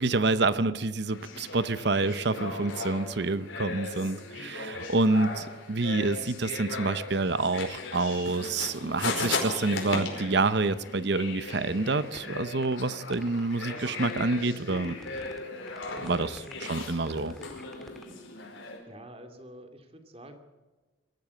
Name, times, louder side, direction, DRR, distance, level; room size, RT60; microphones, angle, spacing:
voice 1, 0.0-15.0 16.0-17.3, right 3 dB, 55° right, 14 dB, 0.8 m, -28 dB
sound 1, 1.1-18.8, left 3 dB, 75° left, 5.0 m, -37 dB
sound 2, 12.1-12.4 12.6-12.7 13.1-14.4 14.7-15.4 15.7-18.1, equal, ahead, 1.9 m, -49 dB
voice 2, 18.4-20.4, right 1 dB, 30° right, 7 dB, 2.5 m, -48 dB
23.0 x 14.0 x 8.3 m, 1.2 s
head